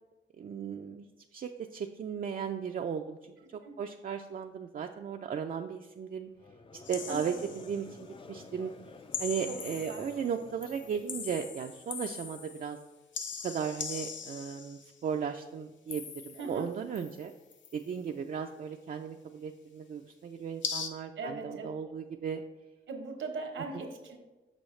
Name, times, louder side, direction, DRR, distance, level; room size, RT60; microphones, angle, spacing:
voice 1, 0.4-1.1 1.3-3.2 3.5-6.3 6.9-8.7 9.2-12.8 13.4-17.3 17.7-22.4, right 7 dB, 45° right, 3 dB, 0.4 m, -36 dB
Conversation / Crowd, 6.3-11.6, left 4 dB, 30° left, 0.4 m, -51 dB
sound 1, 6.9-7.8 9.1-10.3 10.6-12.8 13.1-14.9 15.9-16.6 17.0-17.8 20.6-20.9, left 6 dB, 75° left, 0.6 m, -40 dB
voice 2, 7.1-7.4 9.5-10.0 16.4-16.7 21.2-21.7 22.9-24.2, right 3 dB, 85° right, 4 dB, 1.1 m, -40 dB
6.3 x 6.1 x 3.2 m, 1.1 s
cardioid pair, 90°, 19 cm